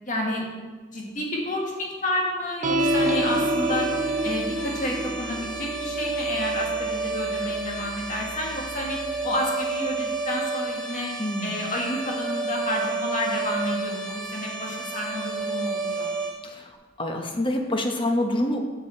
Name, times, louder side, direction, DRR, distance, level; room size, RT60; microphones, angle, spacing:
voice 1, 0.0-0.4 0.9-3.9 4.2-11.1 11.4-16.1, left 1 dB, 45° left, -2 dB, 1.6 m, -30 dB
sound 1, 2.6-9.3, equal, 40° right, 0.6 m, -30 dB
sound 2, 2.8-16.3, right 4 dB, 5° left, 1.1 m, -30 dB
voice 2, 11.2-11.5 16.4-16.7 17.0-18.6, left 1 dB, 25° left, 3 dB, 0.9 m, -26 dB
7.0 x 6.9 x 4.4 m, 1.3 s
head